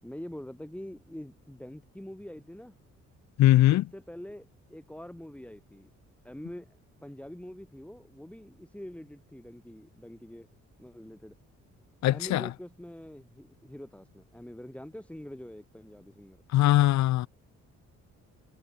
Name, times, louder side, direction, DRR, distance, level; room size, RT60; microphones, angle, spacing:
voice 1, 0.0-2.7 3.7-5.9 6.2-10.5 10.8-11.4 12.1-16.4, left 1 dB, 5° left, 7.7 m, -45 dB
voice 2, 3.4-3.9 12.0-12.5 16.5-17.3, left 15 dB, 65° left, 0.6 m, -21 dB
cardioid pair, 90°, 30 cm